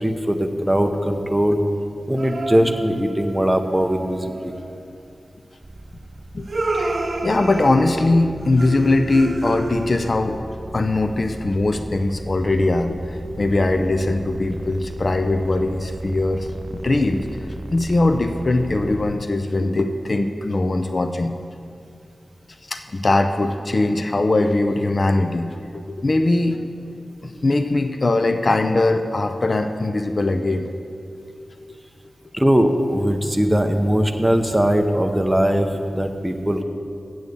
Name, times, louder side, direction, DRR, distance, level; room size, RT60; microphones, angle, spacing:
voice 1, 0.0-1.6 2.1-4.5 32.4-36.6, equal, 5° right, 5 dB, 0.7 m, -20 dB
sound 1, 2.2-4.9 6.5-10.3, right 2 dB, 50° right, 0.8 m, -29 dB
sound 2, 5.6-19.1, right 1 dB, 35° right, 0.3 m, -36 dB
voice 2, 7.2-10.4 10.7-17.3 17.7-21.3 22.7-26.6 27.2-30.7 31.7-31.8, left 2 dB, 40° left, 7 dB, 0.4 m, -21 dB
7.7 x 7.1 x 8.2 m, 2.5 s
wide cardioid pair, 110°, 0 cm